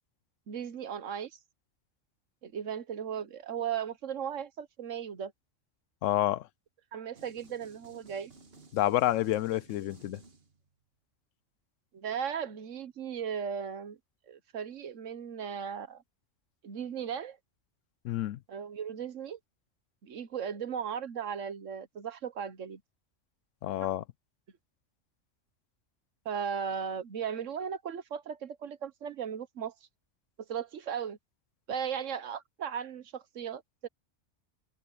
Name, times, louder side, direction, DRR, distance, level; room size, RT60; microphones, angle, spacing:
voice 1, 0.5-1.3 2.4-5.3 6.9-8.3 11.9-14.0 14.3-16.0 16.6-17.4 18.5-19.4 20.0-22.8 26.2-29.7 30.5-31.2 31.7-33.9, right 7 dB, 80° right, 1.4 m, -36 dB
voice 2, 6.0-6.4 8.7-10.2 18.0-18.4 23.6-24.0, left 14 dB, 85° left, 0.9 m, -28 dB
sound 1, 7.1-10.8, right 3 dB, 55° right, 1.8 m, -55 dB
omnidirectional pair, 1.3 m